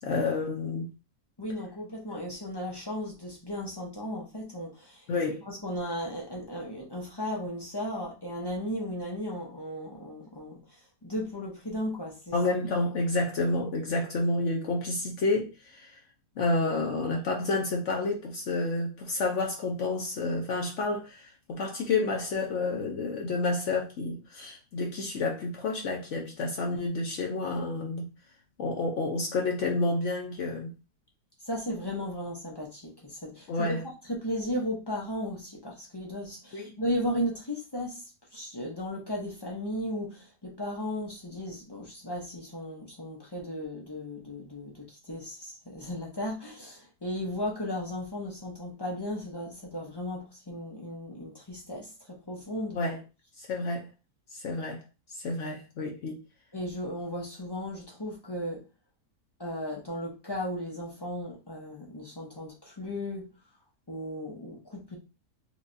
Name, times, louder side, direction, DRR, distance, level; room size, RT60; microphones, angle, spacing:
voice 1, 0.0-0.9 5.1-5.4 12.3-16.0 16.4-28.1 28.6-30.7 33.5-33.8 36.5-36.7 52.7-53.0 53.4-53.9 54.3-54.8 55.1-56.2, left 3 dB, 60° left, 0.8 m, -29 dB
voice 2, 1.4-5.1 5.4-12.3 31.5-33.8 34.1-38.0 38.3-52.8 56.5-58.7 59.4-63.3 63.9-65.0, equal, 35° left, 0.4 m, -35 dB
4.5 x 2.3 x 2.6 m
omnidirectional pair, 1.7 m